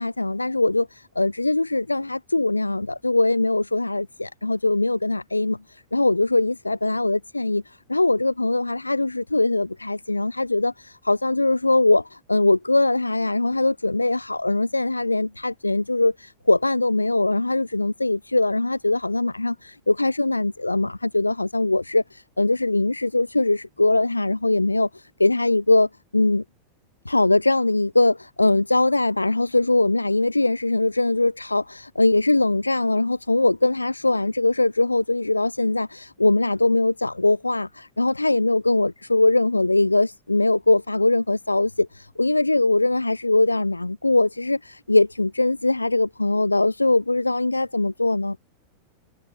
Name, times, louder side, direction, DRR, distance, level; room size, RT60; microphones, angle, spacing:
voice 1, 0.0-5.6 5.9-7.6 7.9-26.4 27.0-48.4, left 2 dB, 85° left, 1.4 m, -21 dB
figure-of-eight pair, 90°, 0 cm